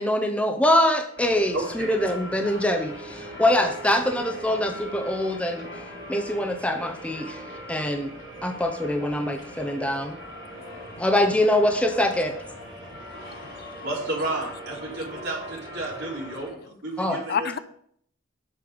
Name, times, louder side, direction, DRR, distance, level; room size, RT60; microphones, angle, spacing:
voice 1, 0.0-5.7 6.1-7.4 7.7-8.1 8.4-10.2 11.0-12.3 17.0-17.2, left 1 dB, 5° left, 0.6 m, -24 dB
sound 1, 1.2-16.5, left 2 dB, 70° left, 3.9 m, -43 dB
voice 2, 1.5-2.0 13.8-17.6, right 2 dB, 60° right, 3.2 m, -32 dB
sound 2, 1.6-16.5, right 2 dB, 20° right, 3.6 m, -43 dB
voice 3, 13.3-13.9 17.3-17.6, left 7 dB, 50° left, 0.5 m, -31 dB
7.7 x 5.4 x 5.1 m
head